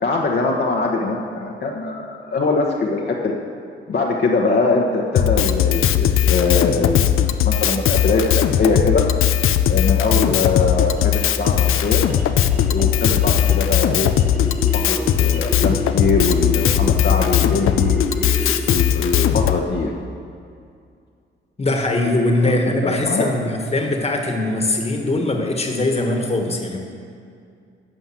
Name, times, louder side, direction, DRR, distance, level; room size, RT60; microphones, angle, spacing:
voice 1, 0.0-3.3 3.9-9.0 9.7-12.0 12.7-14.1 14.7-18.1 18.6-19.9 22.4-22.5 22.8-23.3, left 3 dB, 50° left, -2 dB, 1.1 m, -22 dB
Drum kit, 5.1-19.6, left 10 dB, 80° left, 0.5 m, -18 dB
sound 1, 10.5-18.9, right 1 dB, 5° right, 1.0 m, -32 dB
voice 2, 18.2-18.7 21.6-26.8, left 2 dB, 30° left, 3 dB, 1.5 m, -21 dB
11.5 x 5.5 x 7.6 m, 2.4 s
cardioid pair, 85°, 21 cm